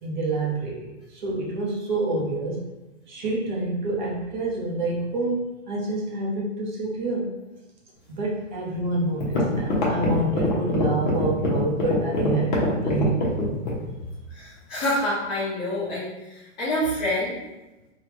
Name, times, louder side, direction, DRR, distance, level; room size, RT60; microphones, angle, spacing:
voice 1, 0.0-2.7 3.1-7.3 8.1-13.7, right 2 dB, 40° right, -3 dB, 0.7 m, -28 dB
sound 1, 8.7-8.8 9.2-13.9, left 2 dB, 40° left, 0.9 m, -24 dB
voice 2, 14.3-17.4, left 1 dB, 15° left, -14 dB, 0.9 m, -27 dB
3.4 x 2.3 x 3.0 m, 1.1 s
hypercardioid pair, 165°, 38 cm